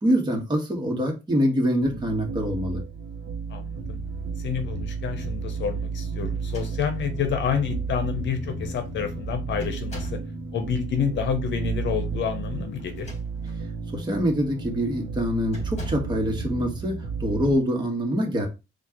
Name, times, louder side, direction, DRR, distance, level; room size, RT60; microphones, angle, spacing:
voice 1, 0.0-2.8 13.9-18.5, equal, 20° right, 1 dB, 1.3 m, -25 dB
sound 1, 1.8-17.5, right 4 dB, 65° right, 0.8 m, -32 dB
voice 2, 3.5-4.0 4.4-10.2 10.5-13.1, left 7 dB, 65° left, 8 dB, 0.7 m, -29 dB
sound 2, 6.3-7.2 8.1-8.2 8.6-8.9 9.6-10.3 12.8-13.6 14.2-14.4 15.5-16.2, left 2 dB, 35° left, 1.5 m, -42 dB
4.4 x 2.4 x 2.9 m, 0.26 s
cardioid pair, 90°, 20 cm